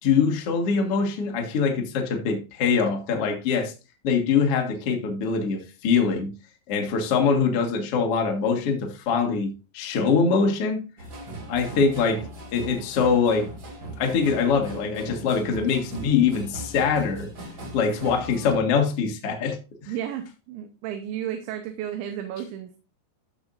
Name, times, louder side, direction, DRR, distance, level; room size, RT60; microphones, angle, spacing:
voice 1, 0.0-3.7 4.0-6.3 6.7-10.9 11.5-13.5 14.0-17.3 17.7-19.9, left 5 dB, 60° left, 1.6 m, -23 dB
sound 1, 11.0-18.6, right 2 dB, 60° right, 1.2 m, -39 dB
voice 2, 19.9-22.8, right 10 dB, 85° right, 3.2 m, -33 dB
15.0 x 6.2 x 2.5 m
omnidirectional pair, 5.2 m